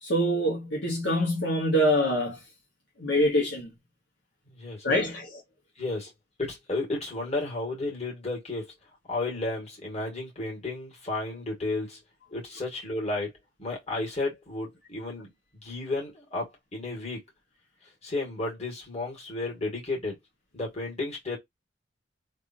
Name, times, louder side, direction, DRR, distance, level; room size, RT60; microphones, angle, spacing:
voice 1, 0.0-2.4 3.0-3.7 4.8-5.4, equal, 70° left, 1.2 m, -25 dB
voice 2, 6.4-8.6 9.1-11.9 12.3-13.3 13.6-15.3 15.6-16.5 16.7-17.2 18.0-20.1 20.5-21.4, left 2 dB, 35° left, 2.0 m, -32 dB
3.5 x 2.6 x 2.8 m
head